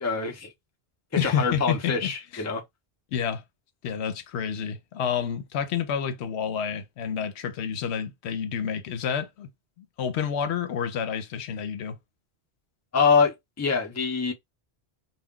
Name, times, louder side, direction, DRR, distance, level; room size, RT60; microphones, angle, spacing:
voice 1, 0.0-0.5 1.1-2.6 12.9-14.3, left 5 dB, 20° left, 0.5 m, -25 dB
voice 2, 1.2-2.4 3.1-3.4 3.8-9.5 9.8-12.0, left 7 dB, 80° left, 0.9 m, -29 dB
2.3 x 2.2 x 3.6 m
omnidirectional pair, 1.1 m